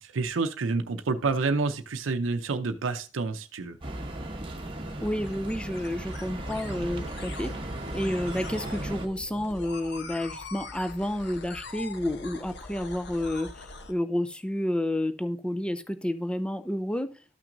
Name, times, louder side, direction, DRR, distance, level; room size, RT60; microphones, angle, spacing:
voice 1, 0.0-3.8, right 4 dB, 80° right, 0.6 m, -28 dB
sound 1, 3.8-9.1, right 1 dB, 25° right, 1.0 m, -36 dB
sound 2, 4.2-13.9, left 3 dB, 60° left, 0.9 m, -43 dB
voice 2, 5.0-7.5 7.9-17.1, left 1 dB, 5° left, 0.4 m, -30 dB
13.0 x 5.9 x 2.6 m
head